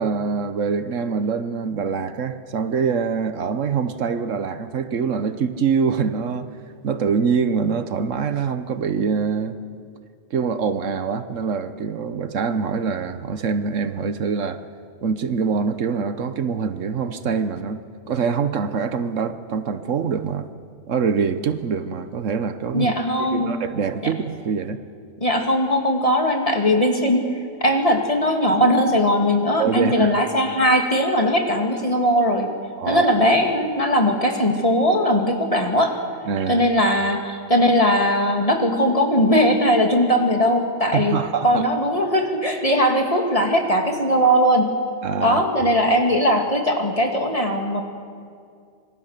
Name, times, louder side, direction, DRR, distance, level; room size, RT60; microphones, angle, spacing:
voice 1, 0.0-6.5 6.8-9.6 10.3-14.6 15.0-17.8 18.1-20.5 20.9-22.9 23.3-24.8 29.6-30.1 32.8-33.0 36.3-36.6 40.9-41.6 45.0-45.4, right 6 dB, 80° right, 11 dB, 1.4 m, -24 dB
voice 2, 22.7-23.6 25.2-27.3 27.6-32.5 32.9-35.9 36.5-41.2 41.4-44.7 45.2-47.8, equal, 25° left, 2 dB, 2.6 m, -19 dB
26.0 x 24.5 x 6.7 m, 2.2 s
omnidirectional pair, 1.3 m